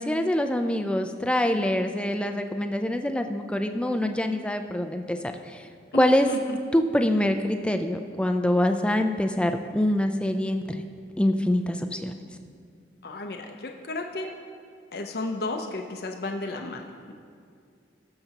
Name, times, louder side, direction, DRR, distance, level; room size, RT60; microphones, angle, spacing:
voice 1, 0.0-5.7 6.0-6.3 6.7-10.8 11.2-12.1, left 1 dB, 5° left, 6 dB, 0.4 m, -25 dB
voice 2, 5.9-6.6 13.0-14.3 14.9-17.1, left 2 dB, 55° left, 3 dB, 0.6 m, -33 dB
19.0 x 6.7 x 2.9 m, 2.2 s
head